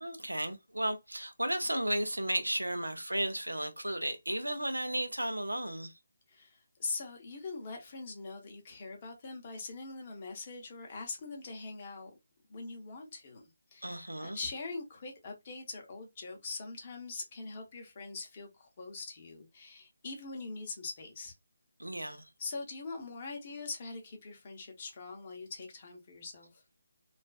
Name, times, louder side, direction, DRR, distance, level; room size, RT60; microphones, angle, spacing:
voice 1, 0.0-5.9 13.8-14.4 21.8-22.3, right 1 dB, 85° right, 0.5 m, -34 dB
voice 2, 6.3-12.1 12.5-21.3 22.0-26.6, left 3 dB, 35° left, 0.8 m, -43 dB
2.4 x 2.3 x 2.2 m
figure-of-eight pair, 150°, 0 cm